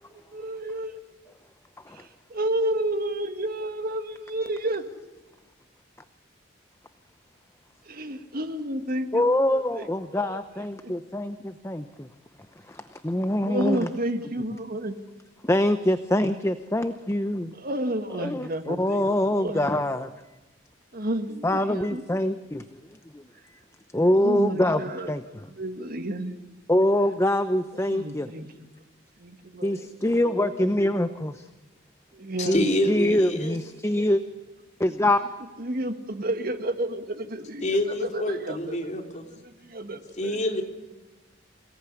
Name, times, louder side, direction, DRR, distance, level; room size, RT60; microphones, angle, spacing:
voice 1, 0.3-1.0 1.9-4.8 7.9-9.9 10.3-10.4 10.8-10.9 13.5-15.0 17.6-19.0 19.3-19.7 20.9-22.0 24.1-25.1 25.6-26.3 27.9-28.5 29.2-30.5 32.1-32.7 35.6-38.8 39.4-40.4, right 1 dB, 50° right, 8 dB, 2.0 m, -31 dB
voice 2, 9.1-12.1 12.7-13.9 15.4-17.5 18.1-20.1 21.4-22.8 23.1-23.6 23.9-24.8 25.1-25.5 26.7-28.3 29.6-31.5 32.5-34.2 34.8-35.2, left 1 dB, 15° left, 10 dB, 0.8 m, -24 dB
voice 3, 32.4-33.6 37.6-39.2 40.2-40.6, left 1 dB, 35° left, 3 dB, 3.3 m, -27 dB
28.0 x 18.0 x 9.8 m, 1.2 s
head